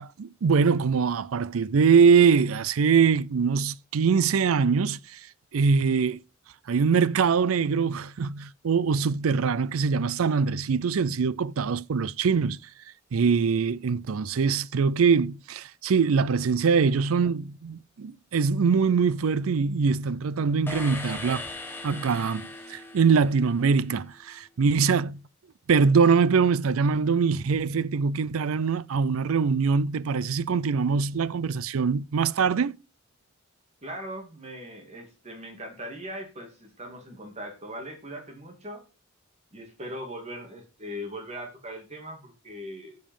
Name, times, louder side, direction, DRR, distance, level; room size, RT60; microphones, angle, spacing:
voice 1, 0.0-5.2 5.5-6.2 6.7-12.6 13.1-21.4 21.8-25.2 25.7-32.8, right 5 dB, 85° right, 0.5 m, -23 dB
sound 1, 20.7-23.8, left 2 dB, 10° left, 1.6 m, -39 dB
voice 2, 33.8-38.8 39.5-43.0, equal, 30° right, 2.5 m, -39 dB
10.0 x 5.4 x 5.4 m
head